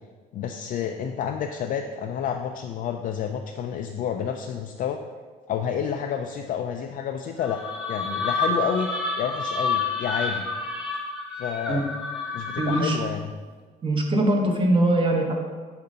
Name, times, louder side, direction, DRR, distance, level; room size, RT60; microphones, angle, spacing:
voice 1, 0.3-5.0 5.5-10.5 11.4-11.8 12.3-13.2, left 8 dB, 55° left, 4 dB, 0.4 m, -29 dB
sound 1, 7.4-13.1, left 3 dB, 5° right, 0.9 m, -29 dB
voice 2, 12.6-13.0 13.8-15.4, right 1 dB, 30° right, 1 dB, 1.0 m, -22 dB
6.7 x 2.6 x 5.4 m, 1.5 s
cardioid pair, 110°, 17 cm